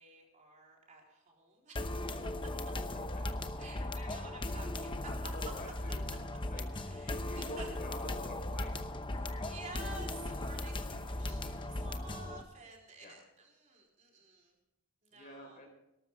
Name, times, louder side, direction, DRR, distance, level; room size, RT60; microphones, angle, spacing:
voice 1, 0.0-2.2 3.6-5.3 6.8-7.7 9.1-14.5 15.0-15.6, right 2 dB, 35° right, -1 dB, 3.8 m, -52 dB
sound 1, 1.8-12.4, left 1 dB, 25° left, 0.8 m, -38 dB
voice 2, 5.3-6.1 6.5-8.9 13.0-13.2 15.1-15.7, left 1 dB, 40° left, 1 dB, 4.2 m, -48 dB
18.5 x 13.0 x 3.6 m, 0.91 s
head